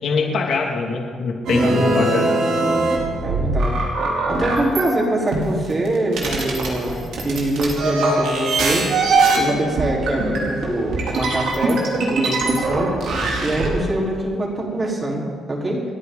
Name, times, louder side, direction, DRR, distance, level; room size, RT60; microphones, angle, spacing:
voice 1, 0.0-2.3, left 4 dB, 65° left, 1 dB, 2.5 m, -23 dB
sound 1, 1.5-4.9 5.3-13.7, right 2 dB, 75° right, 3.5 m, -21 dB
voice 2, 1.6-2.0 3.2-3.8 4.3-8.9 9.4-11.8 12.1-12.9 13.4-15.8, right 1 dB, 30° right, -3 dB, 4.3 m, -24 dB
29.0 x 9.8 x 4.1 m, 2.1 s
cardioid pair, 90°, 0 cm